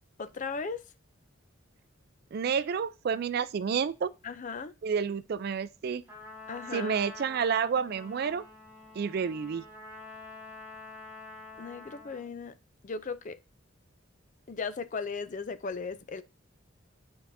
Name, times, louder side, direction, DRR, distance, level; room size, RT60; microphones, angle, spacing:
voice 1, 0.2-0.8 4.2-4.7 6.5-6.9 11.6-12.5 12.8-13.4 14.5-16.2, left 4 dB, 40° left, 0.4 m, -36 dB
voice 2, 2.3-4.1 4.8-6.0 6.7-8.4 9.0-9.6, right 6 dB, 50° right, 0.3 m, -30 dB
Trumpet, 6.1-12.3, left 2 dB, 10° right, 3.3 m, -47 dB
9.1 x 4.7 x 2.6 m
head